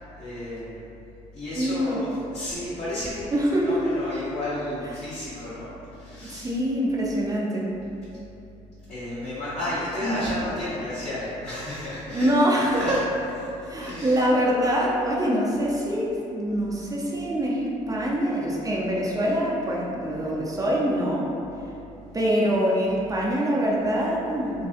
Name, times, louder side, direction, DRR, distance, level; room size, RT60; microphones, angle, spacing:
voice 1, 0.2-0.8 1.3-6.5 8.9-12.3 12.7-13.0 13.8-14.2, left 1 dB, 40° left, -13 dB, 0.8 m, -32 dB
voice 2, 1.5-2.0 3.3-3.9 6.2-7.8 10.0-10.3 12.1-13.0 13.6-21.3 22.1-24.7, equal, 20° right, -4 dB, 0.5 m, -24 dB
2.5 x 2.3 x 2.4 m, 2.8 s
hypercardioid pair, 60°, 17 cm